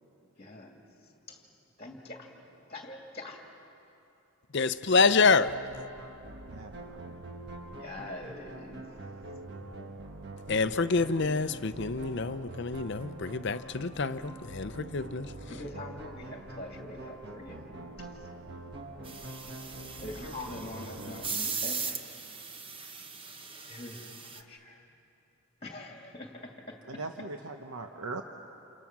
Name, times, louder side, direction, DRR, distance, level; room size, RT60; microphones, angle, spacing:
voice 1, 0.4-1.5 1.8-3.5 7.7-8.9 15.5-18.3 20.0-22.1 23.1-23.2 23.7-24.9 25.6-27.0, left 1 dB, 25° left, 2.4 m, -44 dB
voice 2, 4.5-5.5 10.5-15.3, left 4 dB, 50° left, 0.6 m, -27 dB
sound 1, 5.3-21.3, right 1 dB, 50° right, 1.3 m, -45 dB
voice 3, 6.5-7.1 26.9-28.2, right 3 dB, 75° right, 0.9 m, -40 dB
sound 2, 19.0-24.4, right 5 dB, 25° right, 0.9 m, -39 dB
28.5 x 28.0 x 6.0 m
head